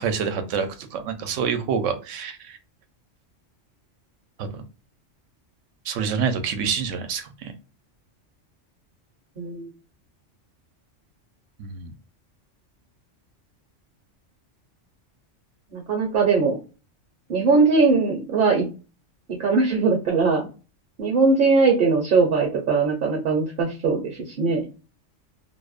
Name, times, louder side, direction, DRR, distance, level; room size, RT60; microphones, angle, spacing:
voice 1, 0.0-2.6 4.4-4.6 5.8-7.5 11.6-11.9, right 6 dB, 80° right, 8 dB, 0.9 m, -27 dB
voice 2, 9.4-9.7 15.7-16.6 17.3-18.6 19.4-20.5 21.0-24.7, right 4 dB, 55° right, 1 dB, 0.8 m, -20 dB
2.7 x 2.0 x 2.3 m, 0.32 s
omnidirectional pair, 1.3 m